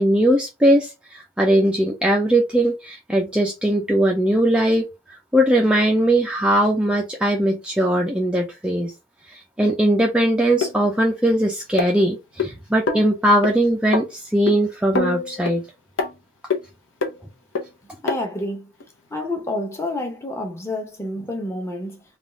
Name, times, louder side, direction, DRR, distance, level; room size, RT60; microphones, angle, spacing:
voice 1, 0.0-8.9 9.3-15.6, right 1 dB, 5° right, 0.4 m, -20 dB
sound 1, 10.6-10.7 11.8-12.5 12.9-13.1 13.4-13.5 13.9-14.0 14.5-14.6 14.9-15.6 16.0-16.1 16.5-16.6 17.0-17.1 17.5-17.6 18.1-18.2 18.8-18.9, left 4 dB, 70° left, 0.8 m, -24 dB
voice 2, 18.0-18.7 19.1-22.0, left 1 dB, 15° left, 0.8 m, -28 dB
3.5 x 2.3 x 3.7 m
head